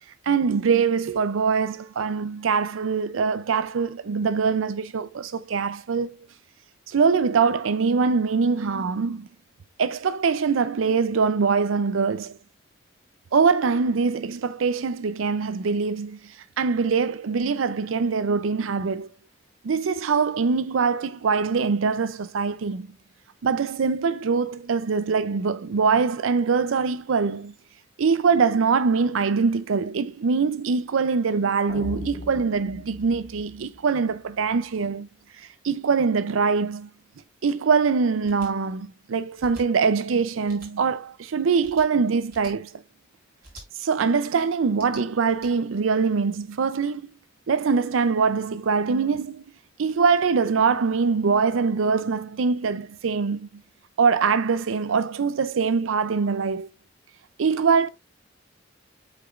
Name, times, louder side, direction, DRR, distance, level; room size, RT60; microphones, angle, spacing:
voice 1, 0.3-6.2 6.9-9.3 9.8-12.4 13.3-19.1 19.6-22.9 23.4-27.5 28.0-35.1 35.4-36.9 37.4-42.7 43.8-47.0 47.5-49.4 49.8-53.5 54.0-56.7 57.4-57.9, right 5 dB, 85° right, 0.5 m, -23 dB
sound 1, 31.7-34.8, left 1 dB, 40° left, 1.6 m, -39 dB
sound 2, 38.2-38.5 39.4-39.6 40.4-40.7 41.6-41.9 42.3-42.5 43.4-43.7 44.7-45.5, right 1 dB, 50° right, 4.2 m, -45 dB
8.1 x 4.9 x 2.4 m
head